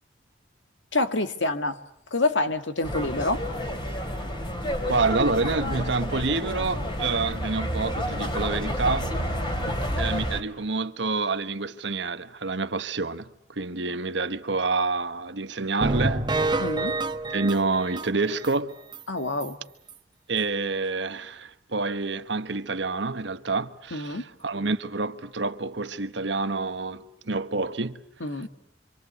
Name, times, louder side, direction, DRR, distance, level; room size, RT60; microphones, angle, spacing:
voice 1, 0.9-1.8 2.1-3.4 9.7-9.8 16.6-17.0 19.1-19.6 23.9-24.2 28.2-28.5, left 2 dB, 80° left, 2.0 m, -27 dB
sound 1, 2.8-10.4, equal, 25° left, 3.2 m, -30 dB
voice 2, 4.9-9.1 10.0-16.6 17.3-18.8 20.3-28.0, right 3 dB, 70° right, 1.3 m, -28 dB
chord-fx, 15.8-18.5 18.9-19.0 19.4-19.5 19.9-20.0, right 2 dB, 25° right, 1.0 m, -28 dB
27.0 x 25.5 x 8.2 m
head